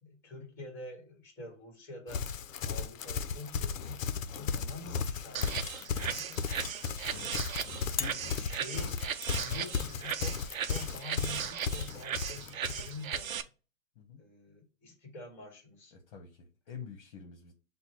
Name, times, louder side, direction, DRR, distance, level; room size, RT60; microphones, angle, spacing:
voice 1, 0.0-2.3 2.6-4.0 4.3-6.0 7.8-9.0 9.4-10.4 10.6-13.4 14.2-15.9, left 2 dB, 5° left, 1.4 m, -47 dB
Livestock farm animals working animals, 2.1-13.3, left 6 dB, 75° left, 0.6 m, -35 dB
sound 1, 5.3-13.4, right 8 dB, 80° right, 0.6 m, -37 dB
voice 2, 6.1-6.4 7.1-7.3 7.8-8.5 9.5-9.7 14.0-14.2 15.9-17.5, left 6 dB, 45° left, 1.0 m, -47 dB
6.6 x 2.2 x 2.9 m
hypercardioid pair, 135°, 40 cm